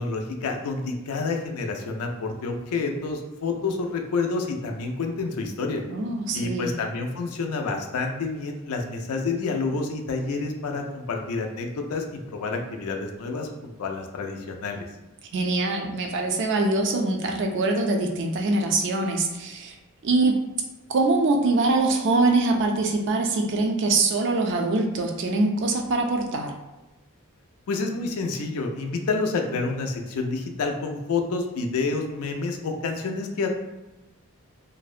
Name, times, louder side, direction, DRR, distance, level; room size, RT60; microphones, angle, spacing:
voice 1, 0.0-5.8 6.3-14.9 27.7-33.5, left 3 dB, 75° left, 3 dB, 0.4 m, -28 dB
voice 2, 5.9-6.7 15.3-19.8 20.0-20.4 20.9-26.5, right 2 dB, 55° right, 3 dB, 0.3 m, -23 dB
2.6 x 2.1 x 2.4 m, 1.0 s
head